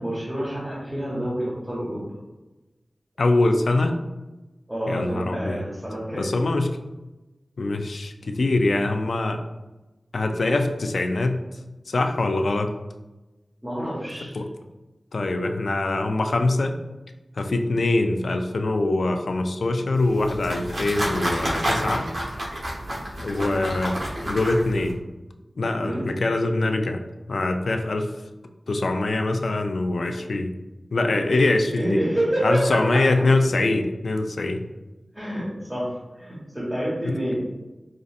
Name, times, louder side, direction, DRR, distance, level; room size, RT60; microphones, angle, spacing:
voice 1, 0.0-2.0 4.7-6.3 13.6-14.4 25.8-26.0 31.7-33.2 35.1-37.4, right 1 dB, 15° right, -8 dB, 1.3 m, -28 dB
voice 2, 3.2-4.0 4.9-5.6 6.1-6.8 7.6-9.4 10.1-11.4 11.9-12.7 14.3-14.5 15.1-16.7 17.4-22.1 23.2-25.0 25.6-27.0 27.3-28.1 28.7-30.5 30.9-32.0 32.4-34.6 37.0-37.1, left 2 dB, 85° left, 6 dB, 0.3 m, -23 dB
sound 1, 20.0-24.9, equal, 75° right, 0.8 m, -29 dB
5.2 x 2.5 x 2.4 m, 1.1 s
cardioid pair, 45°, 0 cm